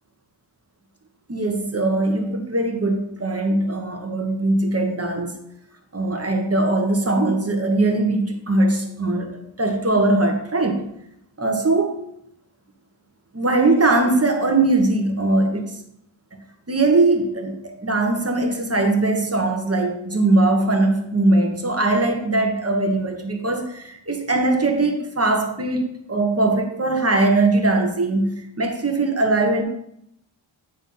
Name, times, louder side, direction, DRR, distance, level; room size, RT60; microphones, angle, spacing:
voice 1, 1.3-5.3 5.9-10.8 11.4-12.0 13.3-15.8 16.7-29.6, right 2 dB, 30° right, 4 dB, 1.3 m, -20 dB
9.3 x 4.1 x 5.6 m, 0.75 s
wide cardioid pair, 105°, 49 cm